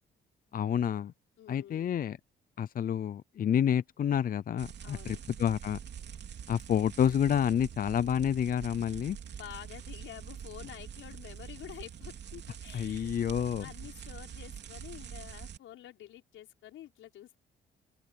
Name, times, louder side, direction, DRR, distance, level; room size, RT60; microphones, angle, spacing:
voice 1, 0.5-1.1 1.5-2.2 2.6-5.8 6.5-9.2 12.7-13.7, left 9 dB, 45° left, 0.5 m, -29 dB
voice 2, 1.4-2.0 4.8-5.2 9.2-13.1 13.6-17.4, left 12 dB, 80° left, 6.0 m, -49 dB
sound 1, 4.6-15.6, right 8 dB, 60° right, 3.2 m, -45 dB
open air
cardioid pair, 90°, 20 cm